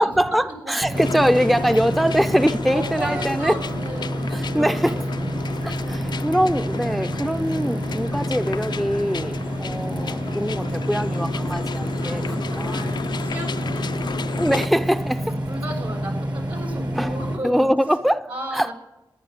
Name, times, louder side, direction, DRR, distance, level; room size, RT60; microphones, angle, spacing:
voice 1, 0.0-3.5 4.3-5.0 5.6-12.8 14.4-15.4 16.9-17.2 17.4-18.3 18.5-18.7, equal, ahead, 0.5 m, -23 dB
sound 1, 0.8-17.4, right 1 dB, 60° right, 2.3 m, -28 dB
sound 2, 0.9-14.7, left 6 dB, 65° left, 0.4 m, -33 dB
voice 2, 2.7-5.3 12.0-14.5 15.5-17.7 18.3-18.7, right 1 dB, 80° right, 5.8 m, -34 dB
14.5 x 10.5 x 6.5 m
cardioid pair, 50°, 8 cm